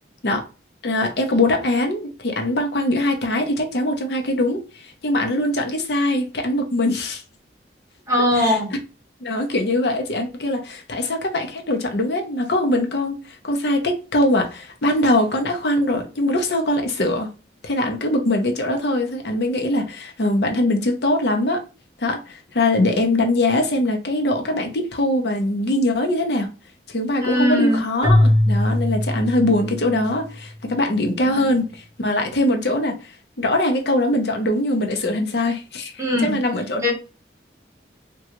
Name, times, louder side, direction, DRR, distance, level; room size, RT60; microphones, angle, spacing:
voice 1, 0.8-7.2 8.4-8.6 9.2-17.3 17.6-21.6 22.0-26.5 26.9-36.9, left 1 dB, 70° left, 0.6 m, -22 dB
voice 2, 8.1-8.7 27.2-27.8 36.0-36.4 36.8-36.9, left 1 dB, 15° right, 1.0 m, -20 dB
Keyboard (musical), 28.0-30.3, left 1 dB, 25° left, 1.1 m, -20 dB
3.6 x 2.3 x 2.9 m
head